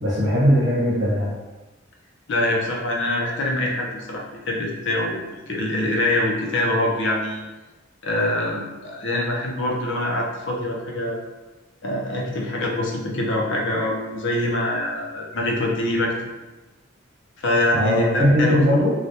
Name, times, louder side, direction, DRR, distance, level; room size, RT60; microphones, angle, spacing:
voice 1, 0.0-1.3 17.7-18.9, equal, 65° right, -6 dB, 1.2 m, -19 dB
voice 2, 2.3-7.4 8.0-11.2 11.8-16.1 17.4-18.8, left 1 dB, 65° left, -1 dB, 0.6 m, -24 dB
3.2 x 2.4 x 2.7 m, 1.1 s
head